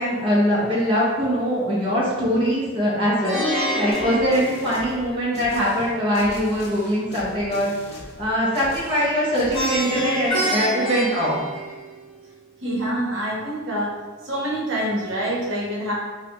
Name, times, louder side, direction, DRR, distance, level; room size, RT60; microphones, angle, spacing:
voice 1, 0.0-7.7 8.2-11.4, equal, 25° right, -7 dB, 0.8 m, -22 dB
Plucked string instrument, 3.2-5.4 9.5-12.1, equal, 25° left, 0.9 m, -27 dB
sound 1, 3.9-10.3, left 1 dB, 55° left, 0.6 m, -41 dB
voice 2, 12.6-15.9, right 1 dB, 65° right, -5 dB, 0.9 m, -26 dB
4.8 x 2.2 x 2.9 m, 1.3 s
head